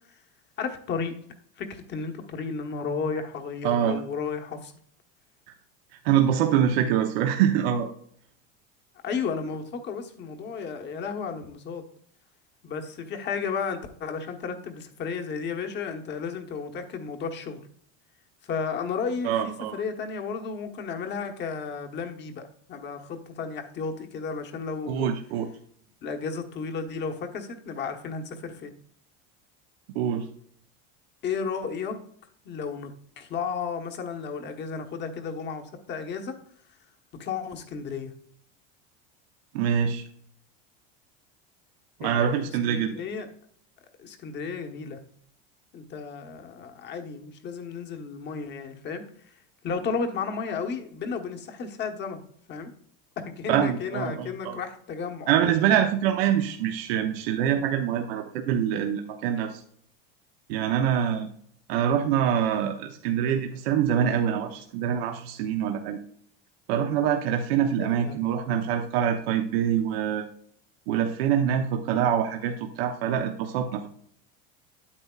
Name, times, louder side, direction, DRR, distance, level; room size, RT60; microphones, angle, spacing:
voice 1, 0.6-1.1 1.6-4.7 9.0-11.8 12.6-17.6 18.4-25.1 26.0-28.7 31.2-31.9 32.4-32.9 33.2-36.3 37.2-38.1 42.0-43.3 44.0-45.0 45.7-52.2 52.5-52.7 53.2-55.3 67.8-68.2, left 5 dB, 35° left, 5 dB, 1.3 m, -33 dB
voice 2, 3.6-4.0 6.0-7.9 19.2-19.8 24.9-25.5 29.9-30.3 39.5-40.0 42.0-42.9 53.5-54.6 55.3-59.6 60.5-61.3 61.7-66.0 66.7-70.3 70.9-73.9, right 9 dB, 80° right, 4 dB, 0.9 m, -25 dB
9.3 x 8.6 x 2.4 m, 0.62 s
supercardioid pair, 135°, 30 cm